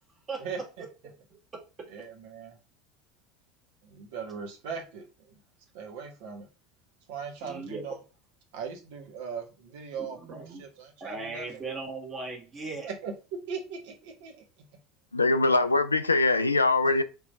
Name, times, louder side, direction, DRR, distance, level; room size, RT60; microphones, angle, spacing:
voice 1, 0.4-0.8 1.9-2.6 3.8-5.3 5.7-6.5 7.1-8.0 8.5-11.5 12.8-14.4, right 6 dB, 60° right, 1.1 m, -39 dB
voice 2, 1.5-1.9 7.4-7.8 10.0-10.6 11.0-12.9, right 3 dB, 25° right, 1.5 m, -38 dB
voice 3, 15.1-17.0, left 3 dB, 80° left, 0.3 m, -22 dB
3.6 x 3.0 x 4.0 m
figure-of-eight pair, 70°, 0 cm